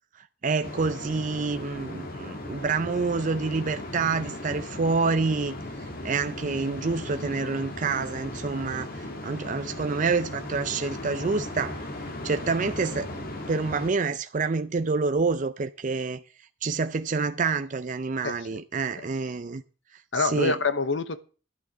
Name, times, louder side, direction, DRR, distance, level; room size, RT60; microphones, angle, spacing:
voice 1, 0.2-11.9 12.2-16.2 16.6-19.6 20.1-20.6, right 4 dB, 40° right, 0.5 m, -28 dB
sound 1, 0.6-13.9, left 1 dB, 50° left, 1.8 m, -37 dB
voice 2, 18.2-18.6 19.0-19.1 20.1-21.2, left 4 dB, 65° left, 0.9 m, -27 dB
11.5 x 6.3 x 8.6 m
head